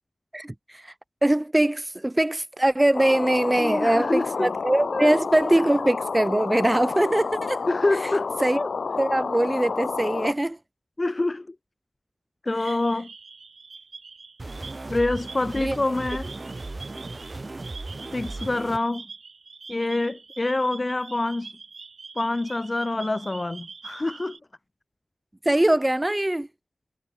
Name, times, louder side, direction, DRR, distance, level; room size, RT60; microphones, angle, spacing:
voice 1, 0.3-0.9 1.2-7.7 8.4-8.6 9.0-10.6 15.6-15.8 25.4-26.5, right 1 dB, 20° right, 0.5 m, -22 dB
sound 1, 2.9-10.3, left 4 dB, 85° left, 0.6 m, -30 dB
voice 2, 3.6-4.5 4.9-5.2 7.7-8.7 11.0-11.5 12.4-13.1 14.9-16.3 18.1-19.1 19.7-21.6 22.1-24.4, left 2 dB, 35° left, 1.2 m, -26 dB
sound 2, 12.6-24.4, right 4 dB, 80° right, 1.8 m, -45 dB
sound 3, 14.4-18.8, right 2 dB, 40° right, 5.2 m, -36 dB
wide cardioid pair, 60°, 0 cm